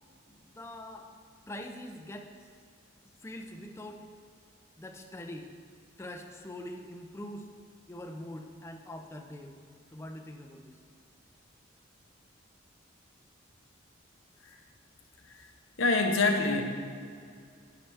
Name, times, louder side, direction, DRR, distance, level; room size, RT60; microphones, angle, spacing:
voice 1, 0.3-1.1 1.5-2.5 3.2-4.0 4.8-5.5 6.0-7.5 7.9-9.5 9.9-10.8, left 1 dB, 15° left, 3 dB, 0.5 m, -43 dB
voice 2, 15.8-16.6, left 3 dB, 85° left, 3 dB, 0.9 m, -26 dB
12.0 x 5.8 x 3.4 m, 2.2 s
head